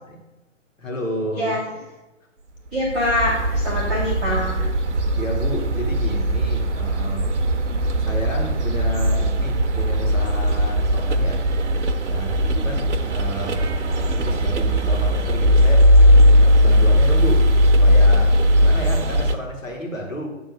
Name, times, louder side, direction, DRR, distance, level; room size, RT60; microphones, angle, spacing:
voice 1, 0.8-1.5 5.1-7.3 8.0-11.4 12.1-13.6 14.1-20.3, equal, 80° left, -1 dB, 2.5 m, -31 dB
voice 2, 1.3-1.7 2.7-4.7, left 1 dB, ahead, -17 dB, 0.4 m, -24 dB
sound 1, 2.7-19.4, equal, 60° right, 0.8 m, -18 dB
8.0 x 3.8 x 6.1 m, 1.0 s
figure-of-eight pair, 135°, 39 cm